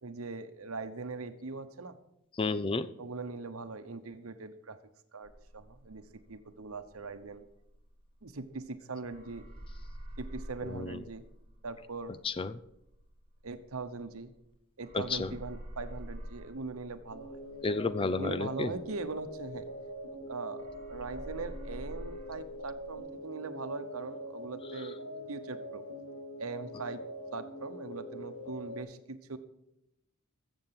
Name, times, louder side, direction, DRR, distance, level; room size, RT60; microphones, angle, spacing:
voice 1, 0.0-2.0 3.0-4.8 5.1-7.4 8.2-9.4 10.2-11.3 11.6-12.1 13.4-14.3 14.8-17.4 18.0-19.7 20.2-25.8 26.4-27.0 27.3-29.4, right 3 dB, 75° right, 10 dB, 1.0 m, -41 dB
voice 2, 2.4-2.9 10.7-11.0 12.2-12.5 14.9-15.3 17.6-18.7, left 3 dB, 25° left, 14 dB, 0.4 m, -31 dB
sound 1, 5.2-8.7 9.0-14.5 14.8-20.3 20.6-23.0, equal, 30° right, 2.8 m, -48 dB
sound 2, 17.1-28.8, equal, 85° left, 4.1 m, -44 dB
14.5 x 7.3 x 5.8 m, 0.82 s
head